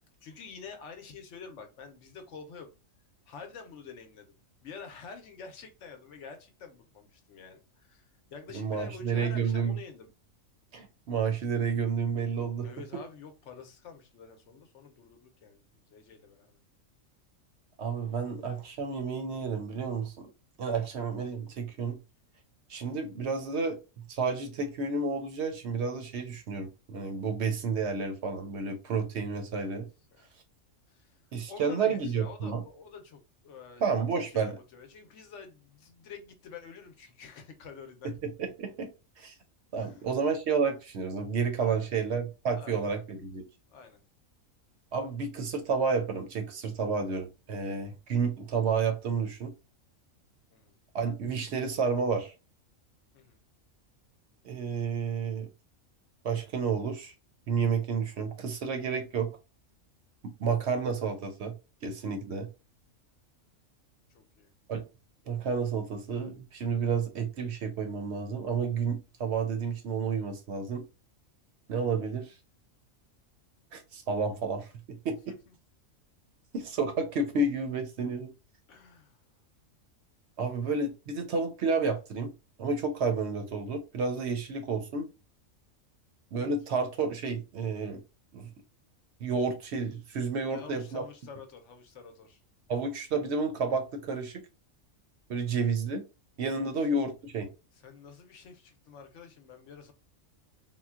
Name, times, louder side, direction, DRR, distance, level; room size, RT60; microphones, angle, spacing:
voice 1, 0.2-2.7 3.3-8.1 8.3-10.1 12.6-15.6 15.9-16.6 30.1-30.3 30.9-31.2 31.5-33.8 34.3-38.1 39.8-40.0 41.6-41.9 42.6-42.9 43.7-44.0 50.5-50.7 53.1-53.4 64.1-64.5 75.3-75.4 78.7-79.2 90.4-92.4 97.7-99.9, left 5 dB, 70° left, 0.9 m, -48 dB
voice 2, 8.5-9.8 10.7-12.7 17.8-20.3 20.6-22.0 22.7-23.8 24.1-29.9 31.3-32.6 33.8-34.6 38.2-38.9 39.2-39.3 39.7-43.5 44.9-49.5 50.9-52.3 54.4-55.5 56.2-57.1 57.5-59.3 60.4-61.5 61.8-62.5 64.7-64.8 65.3-70.8 71.7-72.3 73.7-75.3 76.5-78.3 80.4-82.3 82.6-85.1 86.3-88.0 88.3-88.5 89.2-91.0 92.7-94.4 95.3-96.0 96.4-97.5, right 5 dB, 65° right, 0.8 m, -30 dB
3.8 x 2.2 x 2.3 m
omnidirectional pair, 1.4 m